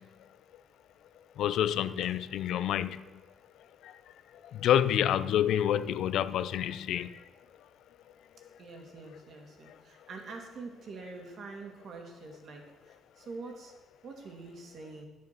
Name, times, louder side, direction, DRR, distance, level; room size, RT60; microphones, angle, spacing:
voice 1, 1.4-3.0 4.6-7.1, left 10 dB, 80° left, 0.5 m, -27 dB
voice 2, 8.6-13.7 14.0-15.1, right 3 dB, 55° right, 2.2 m, -45 dB
11.0 x 7.4 x 6.0 m
cardioid pair, 120°, 0 cm